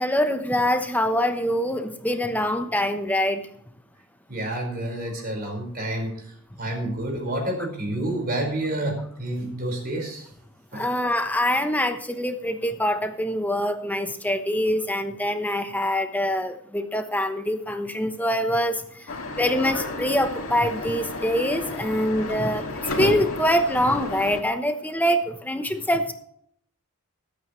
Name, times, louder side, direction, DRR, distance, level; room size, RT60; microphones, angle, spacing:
voice 1, 0.0-3.4 10.7-18.8 19.4-22.6 22.9-26.1, equal, 5° left, 7 dB, 1.0 m, -24 dB
voice 2, 4.3-6.1 6.6-10.2 10.7-10.9, right 1 dB, 45° right, 1 dB, 4.9 m, -29 dB
sound 1, 19.1-24.4, left 2 dB, 75° left, 2.4 m, -31 dB
23.0 x 9.2 x 3.2 m, 0.67 s
head